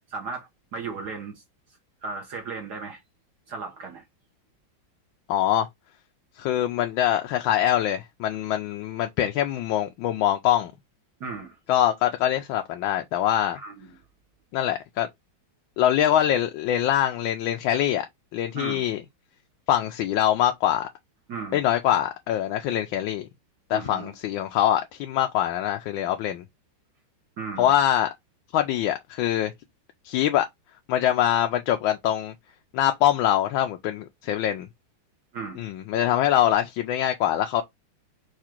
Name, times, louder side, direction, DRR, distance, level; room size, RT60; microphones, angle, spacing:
voice 1, 0.1-1.4 2.0-3.0 3.5-4.0 11.2-11.6 13.5-13.9 18.5-18.9 21.3-21.7 23.7-24.1 27.4-27.7 35.3-35.6, right 4 dB, 60° right, 1.5 m, -35 dB
voice 2, 5.3-5.7 6.4-10.7 11.7-13.6 14.5-15.1 15.8-18.0 18.3-19.0 19.7-20.9 21.5-23.3 23.7-26.4 27.6-28.1 28.5-29.5 30.0-30.5 30.9-32.3 32.7-34.7 35.6-37.6, left 11 dB, 85° left, 1.4 m, -24 dB
4.8 x 2.4 x 4.4 m
omnidirectional pair, 2.1 m